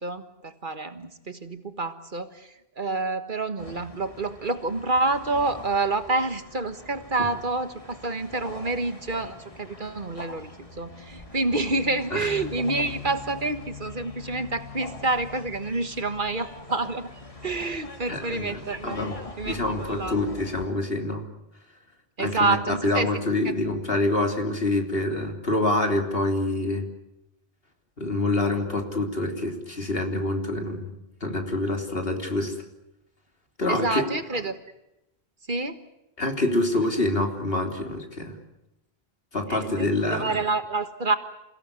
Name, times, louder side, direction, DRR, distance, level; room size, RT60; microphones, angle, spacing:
voice 1, 0.0-17.1 17.4-19.0 19.4-20.2 22.2-23.1 23.4-23.5 33.7-34.6 35.5-35.9 39.5-41.1, right 3 dB, 55° right, 9 dB, 1.7 m, -28 dB
sound 1, 3.6-20.6, left 3 dB, 35° left, 2.6 m, -42 dB
voice 2, 18.1-19.2 19.4-21.3 22.2-26.9 28.0-30.9 31.2-32.5 33.6-34.1 36.2-38.4 39.3-40.4, left 2 dB, 65° left, 4 dB, 3.7 m, -26 dB
28.5 x 17.0 x 9.6 m, 0.89 s
omnidirectional pair, 1.0 m